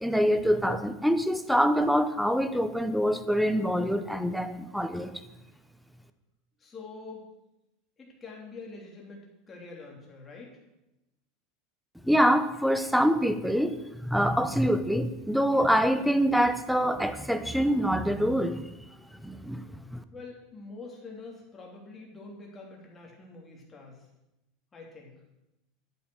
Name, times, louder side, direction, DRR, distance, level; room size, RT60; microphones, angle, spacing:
voice 1, 0.0-5.1 12.0-18.7 19.2-20.0, equal, ahead, 11 dB, 0.8 m, -25 dB
voice 2, 6.6-7.3 8.0-10.5 20.1-23.9 24.7-25.1, left 3 dB, 20° left, -1 dB, 3.3 m, -45 dB
11.0 x 9.1 x 6.4 m, 0.92 s
supercardioid pair, 150°, 0 cm